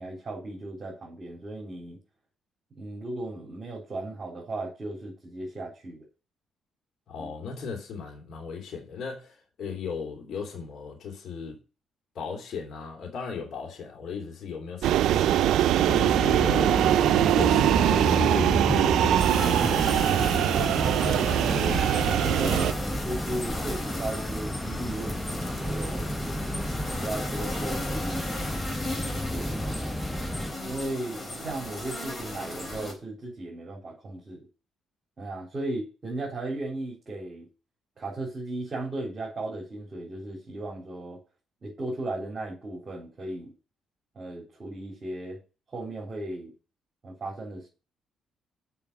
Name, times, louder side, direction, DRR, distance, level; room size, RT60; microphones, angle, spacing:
voice 1, 0.0-2.0 2.8-6.0 7.2-7.3 22.2-25.4 25.6-26.1 26.9-28.6 29.3-30.0 30.6-34.5 35.2-37.5 38.0-41.2 41.6-43.5 44.2-45.4 45.7-46.5 47.0-47.7, right 2 dB, 35° right, 3.8 m, -36 dB
voice 2, 7.1-11.6 12.1-15.3 15.8-16.9 17.3-21.6, left 5 dB, 65° left, 3.1 m, -37 dB
sound 1, 14.8-22.7, right 12 dB, 80° right, 0.4 m, -22 dB
sound 2, 15.9-30.5, left 1 dB, 5° left, 0.6 m, -31 dB
sound 3, 19.2-32.9, left 1 dB, 25° left, 3.4 m, -36 dB
6.9 x 5.8 x 6.9 m
cardioid pair, 90°, 0 cm